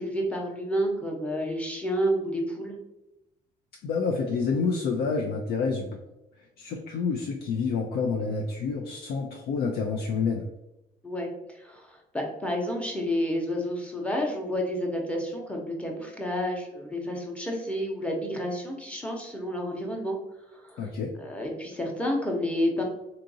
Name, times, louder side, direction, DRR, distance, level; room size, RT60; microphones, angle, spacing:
voice 1, 0.0-2.8 11.0-20.2 20.5-20.9 21.2-22.8, equal, 5° left, 0 dB, 0.8 m, -30 dB
voice 2, 3.8-6.0 6.6-10.4 20.8-21.1, left 5 dB, 70° left, 1 dB, 0.5 m, -28 dB
3.8 x 2.5 x 2.7 m, 0.91 s
cardioid pair, 110°, 17 cm